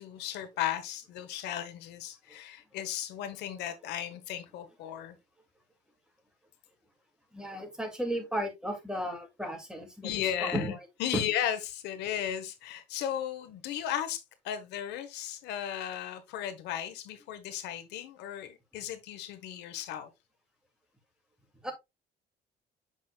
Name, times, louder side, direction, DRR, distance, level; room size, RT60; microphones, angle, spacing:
voice 1, 0.0-5.2 10.0-10.7 11.0-20.1, left 10 dB, 85° left, 1.2 m, -35 dB
voice 2, 7.3-10.1 10.4-10.9 11.1-11.2 21.6-21.7, equal, 5° right, 2.4 m, -34 dB
7.5 x 6.1 x 2.3 m
cardioid pair, 110°, 17 cm